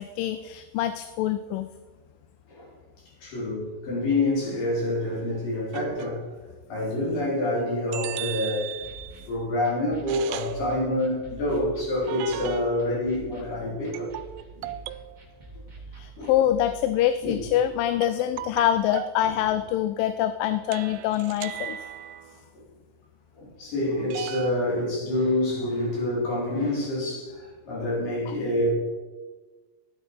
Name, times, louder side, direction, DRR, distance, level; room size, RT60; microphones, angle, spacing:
voice 1, 0.0-1.7 15.9-21.8, left 12 dB, 85° left, 10 dB, 2.2 m, -25 dB
voice 2, 3.2-6.3 6.7-8.7 9.3-14.2 14.6-14.7 16.2-16.3 17.2-17.5 22.5-22.6 23.4-28.7, left 1 dB, 65° left, -6 dB, 5.4 m, -27 dB
sound 1, 5.7-6.4 7.9-9.3 10.1-10.6 12.1-12.9 13.9-15.2 18.0-19.2 20.7-22.4 24.1-24.5, right 14 dB, 90° right, 2.3 m, -36 dB
sound 2, 8.6-18.1, right 3 dB, 25° right, 1.1 m, -47 dB
13.0 x 10.5 x 4.5 m, 1.3 s
omnidirectional pair, 4.0 m